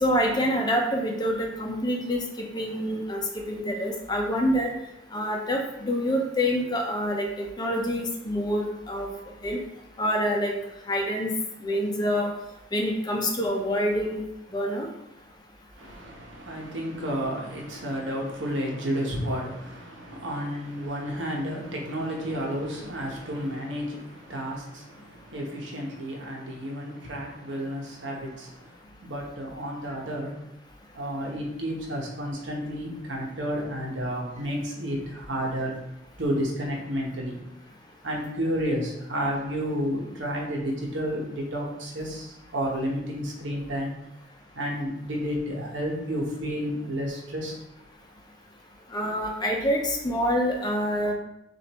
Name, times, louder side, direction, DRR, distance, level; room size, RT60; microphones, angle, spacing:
voice 1, 0.0-3.2 3.5-4.7 5.1-9.1 9.4-9.6 10.0-10.5 10.9-11.3 11.6-12.3 12.7-14.2 14.5-14.9 48.9-51.1, equal, 20° left, 1 dB, 0.7 m, -26 dB
voice 2, 15.8-30.3 30.9-35.7 36.2-37.4 38.0-43.9 44.5-47.5, equal, 80° right, -1 dB, 1.1 m, -31 dB
6.6 x 2.6 x 3.0 m, 0.83 s
head